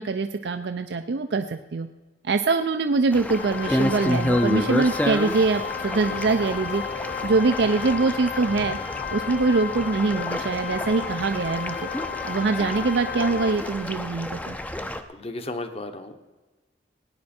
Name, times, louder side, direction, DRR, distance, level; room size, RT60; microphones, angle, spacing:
voice 1, 0.0-1.9 2.2-6.8 7.2-8.8 9.1-11.8 12.2-14.6, right 3 dB, 70° right, 8 dB, 0.5 m, -23 dB
sound 1, 3.1-15.0, left 1 dB, 10° left, 0.5 m, -30 dB
Organ, 3.3-14.0, left 8 dB, 80° left, 1.5 m, -34 dB
voice 2, 15.1-16.2, left 2 dB, 35° left, 8 dB, 1.0 m, -34 dB
17.5 x 9.7 x 4.3 m, 1.2 s
head